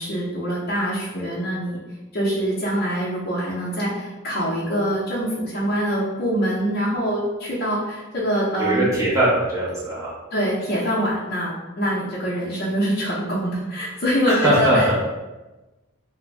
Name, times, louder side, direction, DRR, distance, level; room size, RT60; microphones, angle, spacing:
voice 1, 0.0-1.8 2.1-8.9 10.3-14.9, equal, 50° left, -8 dB, 0.6 m, -24 dB
voice 2, 8.6-10.1 14.3-15.0, right 1 dB, 15° right, -9 dB, 0.9 m, -20 dB
2.5 x 2.1 x 3.2 m, 1.1 s
head